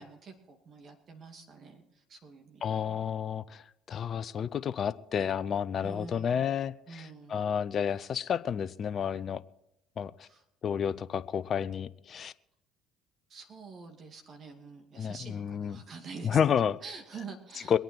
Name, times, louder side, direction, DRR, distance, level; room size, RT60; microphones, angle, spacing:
voice 1, 0.0-3.0 5.8-6.4 6.9-7.5 10.2-10.4 13.3-16.5 16.8-17.8, right 4 dB, 50° right, 3 dB, 2.5 m, -47 dB
voice 2, 2.6-3.6 3.9-9.4 10.0-10.3 10.6-12.3 15.0-15.8 16.2-16.8 17.7-17.8, left 8 dB, 45° left, 15 dB, 0.7 m, -30 dB
23.0 x 9.1 x 4.6 m, 0.85 s
hypercardioid pair, 65°, 0 cm